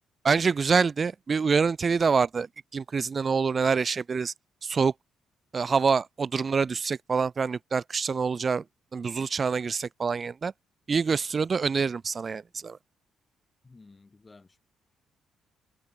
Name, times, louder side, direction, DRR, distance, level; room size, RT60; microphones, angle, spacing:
voice 1, 0.2-4.3 4.6-4.9 5.5-8.6 8.9-10.5 10.9-12.8, right 5 dB, 40° right, 0.4 m, -26 dB
voice 2, 13.6-14.6, left 3 dB, 25° left, 1.8 m, -53 dB
cardioid pair, 90°, 0 cm